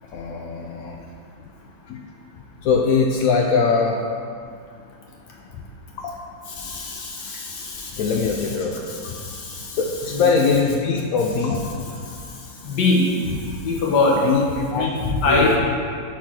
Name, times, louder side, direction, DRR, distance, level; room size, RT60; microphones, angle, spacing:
voice 1, 0.1-1.0 1.9-2.0 2.6-4.0 6.0-6.9 8.0-9.3 9.7-12.3 14.1-15.5, left 4 dB, 85° left, 0 dB, 0.7 m, -23 dB
voice 2, 6.6-7.9 12.6-13.0 13.6-14.2 14.8-14.9 15.2-15.6, left 3 dB, 65° left, -3 dB, 1.6 m, -21 dB
5.9 x 4.2 x 6.1 m, 2.3 s
omnidirectional pair, 2.0 m